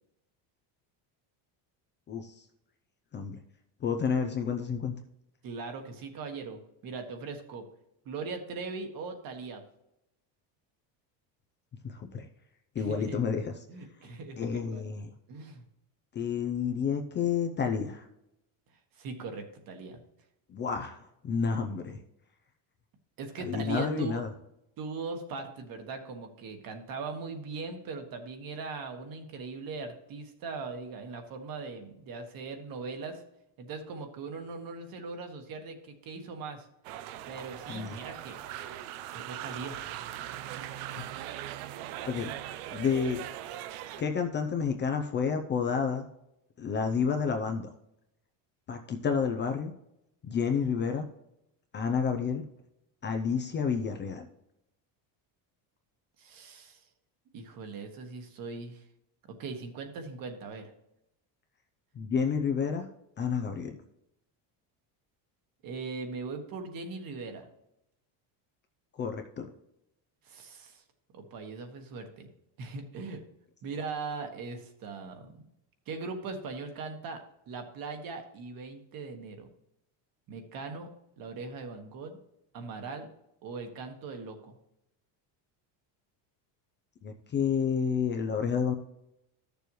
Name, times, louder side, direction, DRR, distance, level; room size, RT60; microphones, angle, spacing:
voice 1, 2.1-2.4 3.1-3.4 3.8-4.9 11.8-12.3 12.7-13.5 14.4-15.1 16.1-18.1 20.5-22.0 23.4-24.3 37.7-38.0 40.9-41.0 42.0-42.3 42.7-43.2 44.0-46.0 46.6-47.7 48.7-49.7 50.2-51.0 51.7-52.4 53.0-54.3 62.0-62.9 63.2-63.7 69.0-69.5 87.0-88.7, left 6 dB, 25° left, 4 dB, 0.5 m, -30 dB
voice 2, 5.4-7.7 8.0-9.6 12.8-13.2 13.7-14.9 15.3-15.6 18.9-20.0 23.2-24.2 24.8-33.2 33.6-36.7 37.2-38.6 39.1-39.8 56.2-56.8 57.3-58.8 59.2-60.7 65.6-67.5 70.2-70.8 71.1-72.3 72.6-73.2 73.6-75.4 75.9-79.5 80.3-80.9 81.2-82.2 82.5-83.1 83.4-84.6, right 4 dB, 45° right, 5 dB, 1.5 m, -40 dB
sound 1, 36.8-44.0, right 12 dB, 85° right, 0.7 m, -40 dB
13.5 x 6.9 x 3.1 m, 0.83 s
cardioid pair, 170°, 46 cm